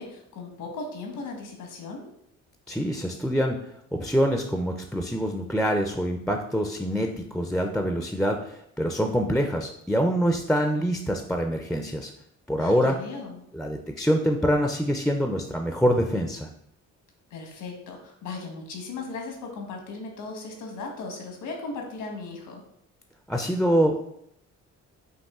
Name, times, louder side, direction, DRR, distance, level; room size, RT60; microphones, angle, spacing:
voice 1, 0.0-2.1 12.6-13.4 17.3-22.6, left 3 dB, 85° left, 2 dB, 1.2 m, -37 dB
voice 2, 2.7-3.6 3.9-12.1 12.5-13.0 13.5-16.5 23.3-24.2, equal, ahead, 4 dB, 0.4 m, -25 dB
5.4 x 2.6 x 3.6 m, 0.73 s
cardioid pair, 90°, 30 cm